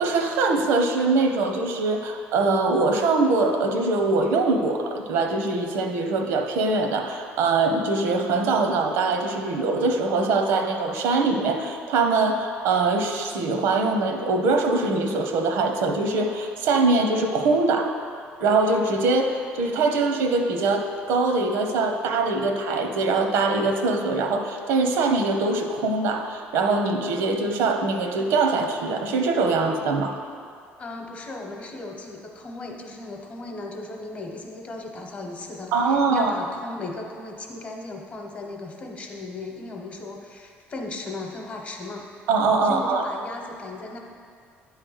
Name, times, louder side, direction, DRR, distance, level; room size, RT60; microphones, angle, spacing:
voice 1, 0.0-17.9 18.4-30.2 35.7-36.3 42.3-43.0, right 3 dB, 80° right, 4 dB, 0.8 m, -23 dB
voice 2, 30.8-42.1 42.6-44.0, left 2 dB, 30° left, 2 dB, 0.9 m, -36 dB
9.5 x 3.3 x 6.4 m, 2.3 s
cardioid pair, 145°, 4 cm